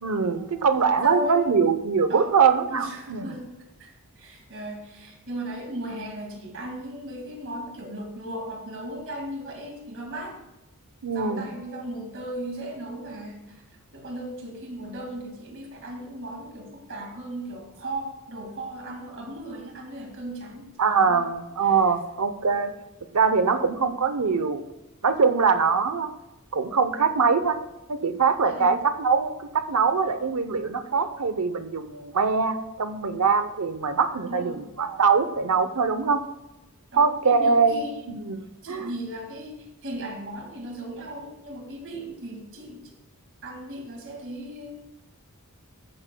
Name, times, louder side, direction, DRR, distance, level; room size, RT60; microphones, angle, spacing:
voice 1, 0.0-3.4 11.0-11.5 20.8-22.7 23.1-24.6 25.0-26.1 26.5-27.6 27.9-36.2 37.0-38.9, right 5 dB, 85° right, 10 dB, 0.8 m, -23 dB
voice 2, 1.0-1.6 2.1-2.3 2.7-3.5 3.8-3.9 4.2-10.4 11.1-13.6 13.9-21.3 21.6-21.7 28.4-28.8 34.3-34.6 36.9-38.1 38.6-42.9 43.4-44.9, right 1 dB, 60° right, 1 dB, 2.1 m, -36 dB
15.0 x 9.1 x 2.3 m, 0.97 s
head